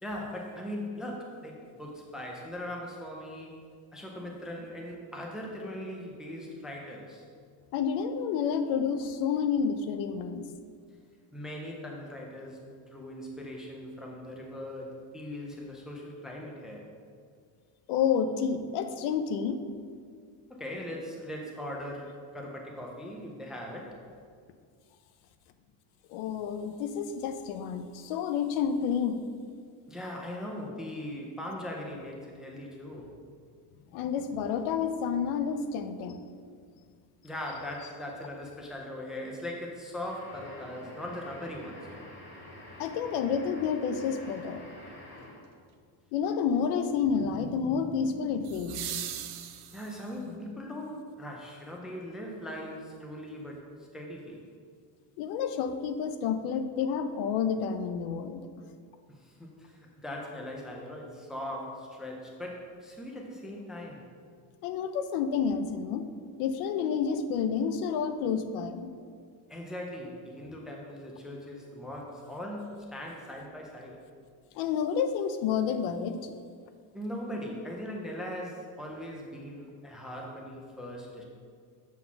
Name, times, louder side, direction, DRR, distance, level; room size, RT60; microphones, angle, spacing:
voice 1, 0.0-7.3 11.3-16.9 20.5-24.0 29.9-33.2 37.2-42.1 49.7-53.6 53.9-54.4 59.1-64.1 69.5-74.0 76.9-81.2, left 1 dB, ahead, 0 dB, 0.3 m, -40 dB
voice 2, 7.7-10.4 17.9-19.6 26.1-29.3 33.9-36.2 42.8-44.6 46.1-49.0 50.3-50.4 55.2-58.5 64.6-66.1 66.4-68.9 74.6-76.3, left 6 dB, 90° left, 9 dB, 0.7 m, -29 dB
sound 1, 40.0-45.5, left 1 dB, 25° left, 1.4 m, -48 dB
sound 2, 42.8-42.9 48.4-50.2 52.4-52.5, right 11 dB, 55° right, 0.6 m, -39 dB
7.3 x 4.0 x 5.8 m, 2.1 s
cardioid pair, 175°, 47 cm